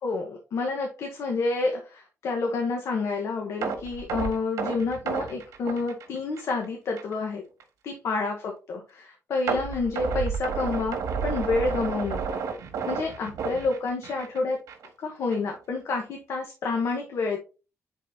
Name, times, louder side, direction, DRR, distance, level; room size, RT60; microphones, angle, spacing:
voice 1, 0.0-7.4 7.8-11.0 11.2-12.4 12.9-14.6 15.0-17.4, left 3 dB, 60° left, 1 dB, 1.2 m, -29 dB
sound 1, 3.6-6.7 7.0-7.1 7.6-7.7 9.5-14.4 14.7-14.9 15.3-15.4, right 6 dB, 90° right, 1.5 m, -31 dB
10.0 x 4.1 x 2.7 m, 0.33 s
cardioid pair, 150°, 6 cm